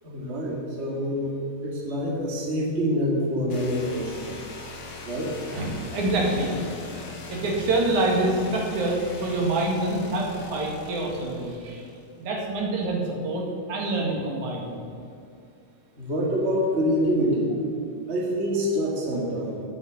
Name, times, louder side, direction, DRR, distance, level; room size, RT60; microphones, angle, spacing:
voice 1, 0.0-1.4 1.6-4.3 5.0-5.3 16.0-17.5 18.1-19.6, equal, 25° right, -2 dB, 2.0 m, -26 dB
sound 1, 3.5-12.2, left 3 dB, 55° left, 2.5 m, -41 dB
voice 2, 5.4-6.5 7.3-11.8 12.2-13.4 13.7-14.8, right 2 dB, 70° right, -1 dB, 3.3 m, -26 dB
9.2 x 8.8 x 8.0 m, 2.5 s
omnidirectional pair, 3.5 m